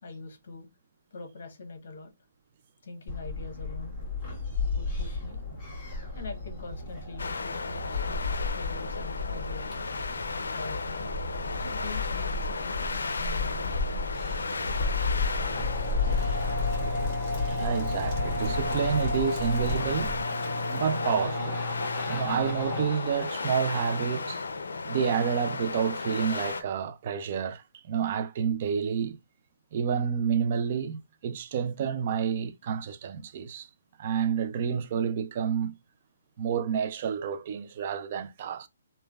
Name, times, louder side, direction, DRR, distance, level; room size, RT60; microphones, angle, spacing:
voice 1, 0.0-0.7 1.1-2.1 2.8-3.9 4.7-5.4 6.1-9.8 10.5-11.1 11.6-13.9, left 3 dB, 60° left, 1.0 m, -43 dB
sound 1, 3.1-20.2, left 3 dB, 15° left, 1.4 m, -33 dB
sound 2, 7.2-26.6, left 4 dB, 90° left, 0.4 m, -35 dB
sound 3, 15.3-24.9, left 1 dB, 35° left, 1.4 m, -34 dB
voice 2, 17.6-20.2 20.7-21.6 22.1-24.4 24.8-29.2 29.7-33.7 34.0-35.7 36.4-38.7, right 7 dB, 40° right, 0.3 m, -29 dB
3.2 x 2.1 x 2.3 m
hypercardioid pair, 160°, 0 cm